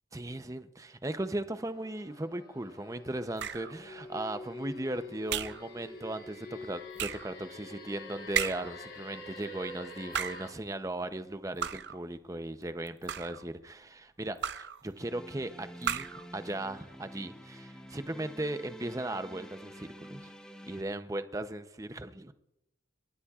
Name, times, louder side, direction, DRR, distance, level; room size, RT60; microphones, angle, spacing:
voice 1, 0.1-20.3 20.7-22.3, right 1 dB, 15° right, 0.6 m, -37 dB
sound 1, 1.6-10.5, left 2 dB, 65° left, 4.2 m, -46 dB
sound 2, 3.4-3.8 5.3-5.7 7.0-7.3 8.3-8.8 10.0-10.5 11.6-12.0 12.9-13.5 14.4-14.8 15.8-16.3, right 8 dB, 65° right, 0.5 m, -34 dB
sound 3, 14.9-20.8, equal, 5° left, 0.9 m, -49 dB
28.0 x 13.0 x 2.4 m
head